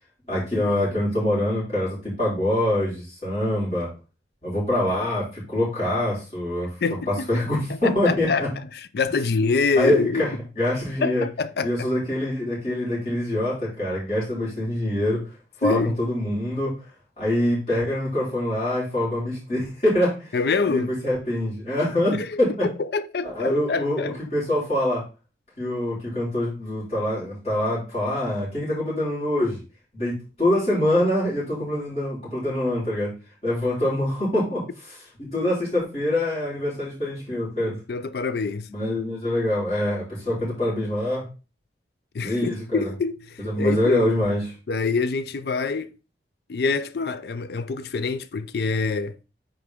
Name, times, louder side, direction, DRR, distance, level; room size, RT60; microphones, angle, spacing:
voice 1, 0.3-3.9 4.4-6.7 7.3-8.5 9.8-11.2 11.6-15.2 15.6-16.7 17.2-20.3 20.7-22.7 23.2-25.0 25.6-29.6 29.9-30.1 30.4-33.1 33.4-34.6 35.2-37.8 38.7-41.3 42.2-42.9 43.4-44.4, left 1 dB, 35° left, 4.0 m, -24 dB
voice 2, 6.8-7.4 7.7-8.5 8.7-10.3 11.0-11.9 15.6-15.9 20.3-20.9 22.1-22.4 22.8-24.2 37.9-38.7 42.1-44.1 44.7-46.0 46.5-49.2, left 4 dB, 60° left, 0.4 m, -26 dB
9.3 x 3.8 x 3.5 m
head